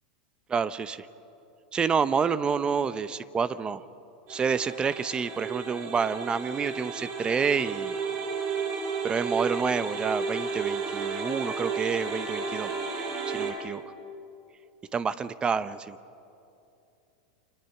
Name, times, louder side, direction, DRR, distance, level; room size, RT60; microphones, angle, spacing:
voice 1, 0.5-1.1 1.7-3.8 4.3-7.9 9.0-12.7 13.3-13.8 14.9-16.0, right 6 dB, 20° right, 14 dB, 0.9 m, -28 dB
sound 1, 4.3-13.5, right 5 dB, 50° right, 7.0 m, -33 dB
29.0 x 26.0 x 6.0 m, 2.7 s
hypercardioid pair, 110°, 4 cm